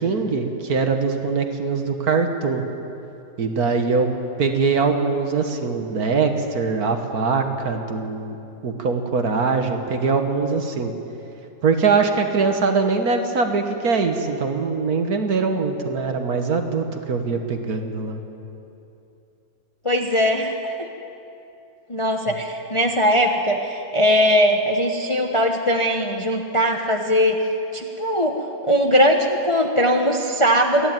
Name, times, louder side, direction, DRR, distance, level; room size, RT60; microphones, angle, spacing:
voice 1, 0.0-2.6 3.4-4.1 4.4-8.4 8.6-10.9 11.6-18.2, right 4 dB, 55° right, 5 dB, 1.8 m, -22 dB
voice 2, 19.8-20.9 21.9-27.5 27.7-28.4 28.6-30.9, equal, 20° left, 3 dB, 0.9 m, -20 dB
28.0 x 11.0 x 9.1 m, 2.9 s
omnidirectional pair, 2.0 m